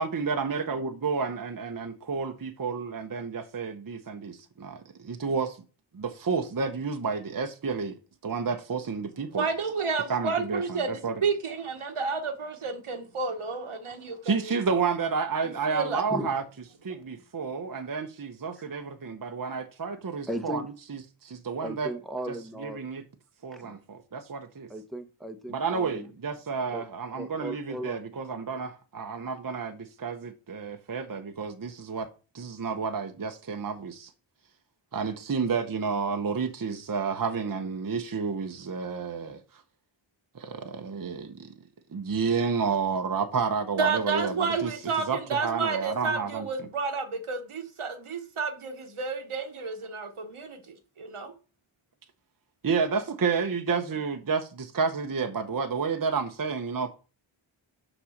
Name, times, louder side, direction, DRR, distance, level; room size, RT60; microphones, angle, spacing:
voice 1, 0.0-5.6 5.9-7.9 8.2-9.5 10.1-11.2 14.2-16.4 16.8-20.6 20.9-21.9 22.3-23.0 23.4-24.7 25.5-32.1 32.3-34.1 34.9-39.6 40.3-41.5 41.9-44.7 45.1-46.5 52.6-56.9, right 5 dB, 45° right, 0.9 m, -30 dB
voice 2, 9.3-14.5 15.7-16.0 43.8-51.3, right 4 dB, 85° right, 1.4 m, -31 dB
voice 3, 20.3-20.6 21.6-22.9 23.6-23.8 24.7-26.1 26.7-26.8 27.1-28.0, equal, ahead, 1.1 m, -36 dB
5.9 x 5.3 x 6.4 m
wide cardioid pair, 60°, 49 cm